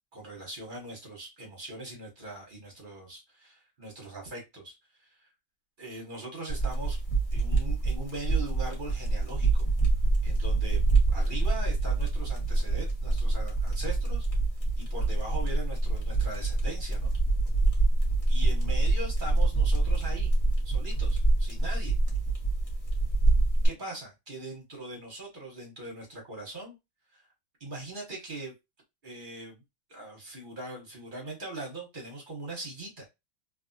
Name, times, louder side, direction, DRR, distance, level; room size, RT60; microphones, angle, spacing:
voice 1, 0.1-5.3 5.8-7.0 7.3-9.7 10.2-10.8 11.1-14.3 14.8-17.1 18.3-20.3 20.6-21.9 23.6-26.7 27.1-27.3 27.6-28.5 29.0-29.6 29.9-33.1, right 2 dB, 40° right, 0.7 m, -41 dB
sound 1, 6.5-23.7, right 2 dB, 35° left, 0.5 m, -26 dB
3.3 x 2.4 x 2.6 m
omnidirectional pair, 2.3 m